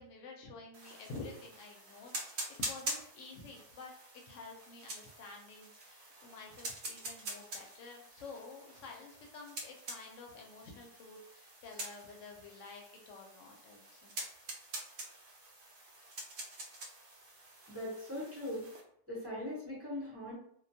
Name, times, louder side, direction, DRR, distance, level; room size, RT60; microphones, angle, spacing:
voice 1, 0.0-14.1, left 3 dB, 75° left, 1 dB, 0.9 m, -50 dB
sound 1, 0.7-18.8, right 2 dB, 65° right, 0.9 m, -46 dB
voice 2, 17.7-18.7 19.1-20.3, left 1 dB, 15° right, -7 dB, 0.8 m, -40 dB
2.4 x 2.2 x 2.6 m, 0.69 s
omnidirectional pair, 1.3 m